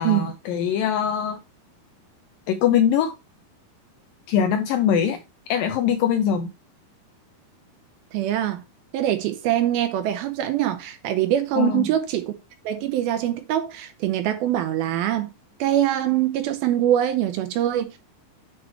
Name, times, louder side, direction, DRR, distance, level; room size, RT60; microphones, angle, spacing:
voice 1, 0.0-1.4 2.5-3.1 4.3-5.2 5.5-6.5 11.6-11.9, left 8 dB, 80° left, 2.1 m, -22 dB
voice 2, 8.1-8.6 8.9-12.3 12.6-15.3 15.6-18.0, right 12 dB, 80° right, 2.4 m, -23 dB
8.2 x 3.3 x 4.6 m
omnidirectional pair, 4.7 m